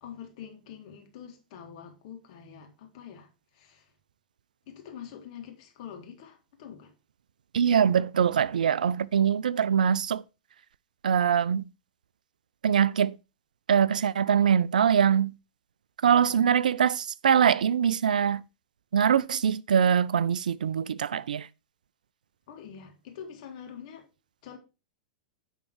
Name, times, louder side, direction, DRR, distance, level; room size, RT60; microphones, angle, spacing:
voice 1, 0.0-3.9 4.7-6.9 16.2-16.6 22.5-24.1 24.4-24.6, left 8 dB, 55° left, 1.9 m, -45 dB
voice 2, 7.5-10.2 11.0-11.6 12.6-13.2 13.7-15.3 16.0-18.4 18.9-21.5, right 8 dB, 75° right, 0.4 m, -23 dB
9.6 x 3.7 x 4.6 m
hypercardioid pair, 100°, 4 cm